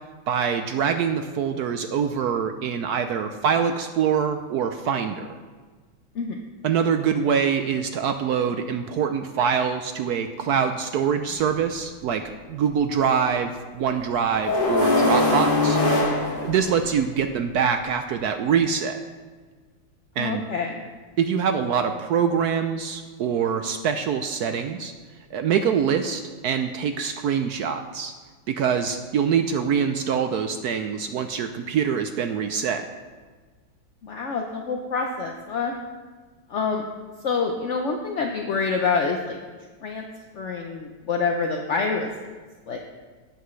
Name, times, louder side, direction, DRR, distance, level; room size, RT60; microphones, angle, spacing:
voice 1, 0.3-5.4 6.6-19.0 20.2-20.4 21.2-24.9 25.3-28.1 28.5-32.9, right 7 dB, 75° right, 7 dB, 0.9 m, -24 dB
sound 1, 11.3-11.4 14.5-17.1, left 2 dB, 30° left, 1.6 m, -21 dB
voice 2, 20.2-20.8 34.0-35.7 36.5-36.8 37.2-39.4 39.8-40.0 40.3-42.1 42.7-42.8, left 4 dB, 65° left, 2 dB, 0.7 m, -26 dB
17.5 x 8.1 x 3.2 m, 1.4 s
omnidirectional pair, 2.1 m